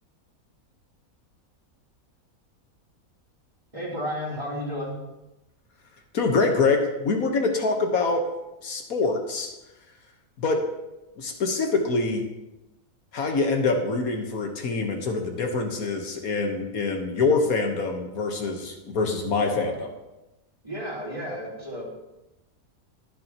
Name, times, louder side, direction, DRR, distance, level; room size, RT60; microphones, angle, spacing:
voice 1, 3.7-5.0 20.6-21.9, equal, 20° right, -6 dB, 3.4 m, -32 dB
voice 2, 6.1-8.2 8.6-9.5 10.4-10.6 11.2-12.3 13.1-19.9, left 3 dB, 75° left, 3 dB, 1.7 m, -25 dB
21.5 x 7.2 x 3.0 m, 0.97 s
omnidirectional pair, 1.5 m